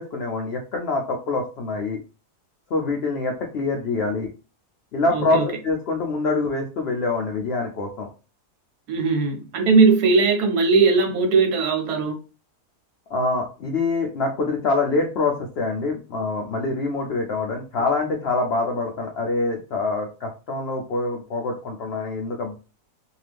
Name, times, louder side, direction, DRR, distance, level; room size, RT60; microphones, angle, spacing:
voice 1, 0.0-2.0 2.7-4.3 4.9-8.1 13.1-22.6, left 3 dB, 75° left, 0.5 m, -25 dB
voice 2, 5.1-5.5 8.9-12.2, right 4 dB, 80° right, 1.2 m, -19 dB
2.7 x 2.4 x 3.3 m
omnidirectional pair, 1.7 m